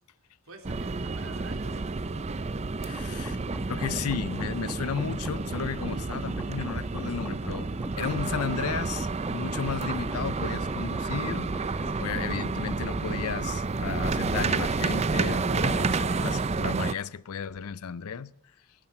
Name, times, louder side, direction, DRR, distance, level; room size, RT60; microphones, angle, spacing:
voice 1, 0.4-2.4 11.8-12.2, right 2 dB, 70° right, 3.2 m, -48 dB
sound 1, 0.6-16.9, right 3 dB, 30° right, 0.5 m, -30 dB
voice 2, 2.8-3.4 3.7-7.7 8.0-18.3, left 6 dB, 85° left, 0.5 m, -34 dB
sound 2, 2.9-12.9, right 1 dB, 10° right, 1.0 m, -42 dB
16.0 x 11.5 x 7.6 m
head